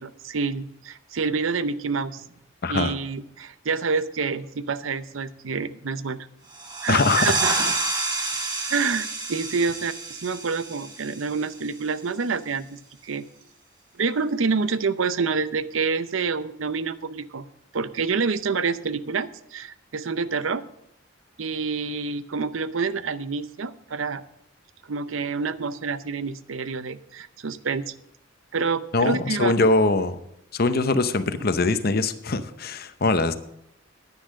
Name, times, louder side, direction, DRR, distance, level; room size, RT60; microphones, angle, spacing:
voice 1, 0.0-2.3 2.7-6.3 6.8-7.7 8.7-13.2 14.0-17.5 17.7-20.6 21.4-24.2 24.9-27.9 28.5-29.6, right 5 dB, 75° right, 14 dB, 0.6 m, -27 dB
voice 2, 2.6-2.9 6.9-7.8 28.9-30.2 30.5-33.3, left 3 dB, 50° left, 11 dB, 0.8 m, -22 dB
sound 1, 6.5-11.9, right 3 dB, 20° right, 1.4 m, -29 dB
10.0 x 10.0 x 6.4 m, 0.80 s
head